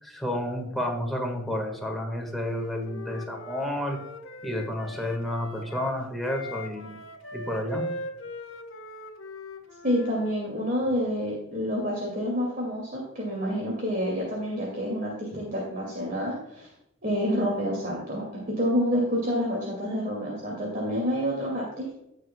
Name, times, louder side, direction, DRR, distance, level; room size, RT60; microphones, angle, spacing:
voice 1, 0.0-4.0 4.4-7.0 7.3-7.8, left 1 dB, ahead, 1 dB, 1.8 m, -30 dB
Wind instrument woodwind instrument, 2.4-10.4, left 1 dB, 85° left, 1.3 m, -40 dB
voice 2, 9.8-16.7 17.0-22.0, equal, 45° right, -3 dB, 2.5 m, -28 dB
16.5 x 6.5 x 2.3 m, 0.83 s
head